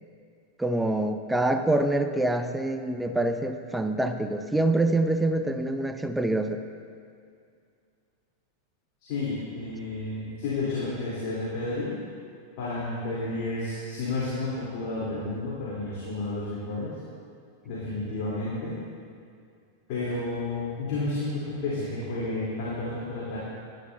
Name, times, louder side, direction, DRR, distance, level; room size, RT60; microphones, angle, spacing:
voice 1, 0.6-6.6, right 2 dB, 5° right, 7 dB, 0.6 m, -26 dB
voice 2, 9.0-11.9 12.6-17.0 17.6-18.8 19.9-23.4, left 2 dB, 50° left, -8 dB, 3.3 m, -31 dB
19.0 x 11.5 x 2.7 m, 2.3 s
figure-of-eight pair, 90°, 0 cm